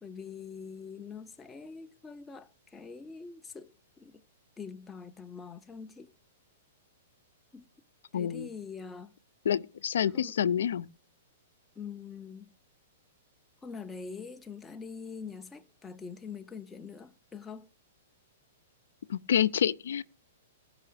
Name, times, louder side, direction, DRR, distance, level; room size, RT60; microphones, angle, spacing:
voice 1, 0.0-4.2 4.6-6.1 7.5-7.7 8.1-9.1 10.1-10.4 11.8-12.5 13.6-17.7, left 5 dB, 10° left, 0.5 m, -44 dB
voice 2, 8.1-8.5 9.5-10.9 19.1-20.0, left 9 dB, 85° left, 0.6 m, -28 dB
15.5 x 5.6 x 5.0 m
hypercardioid pair, 170°, 0 cm